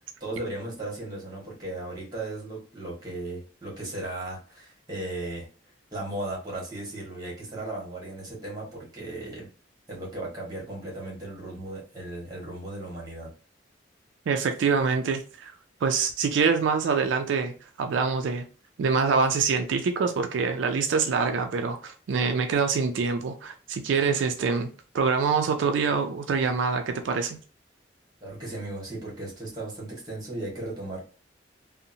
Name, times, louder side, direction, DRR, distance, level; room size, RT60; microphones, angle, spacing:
voice 1, 0.2-5.5 5.9-9.5 9.9-13.3 28.2-31.0, right 2 dB, 20° right, -4 dB, 1.2 m, -36 dB
voice 2, 14.3-15.5 15.8-18.5 18.8-24.7 24.9-27.4, right 5 dB, 85° right, 6 dB, 0.3 m, -25 dB
2.7 x 2.0 x 2.6 m, 0.38 s
head